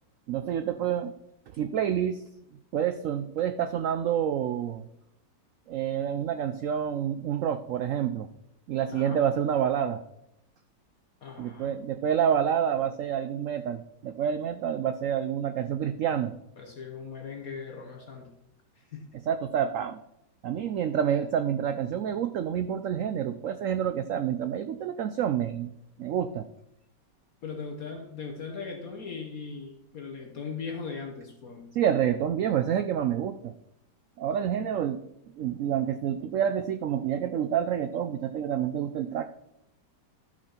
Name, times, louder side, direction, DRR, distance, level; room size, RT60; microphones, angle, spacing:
voice 1, 0.3-1.1 1.5-2.2 2.7-4.8 5.7-8.3 8.7-10.0 11.4-16.3 19.3-20.0 20.4-26.5 31.7-33.5 34.2-35.0 35.3-39.3, right 9 dB, 90° right, 10 dB, 0.7 m, -28 dB
voice 2, 8.9-9.2 11.2-11.8 16.6-18.3 18.8-19.2 27.4-31.7 34.3-34.5, left 5 dB, 55° left, 2 dB, 1.4 m, -39 dB
12.5 x 6.0 x 4.4 m, 0.82 s
omnidirectional pair, 1.9 m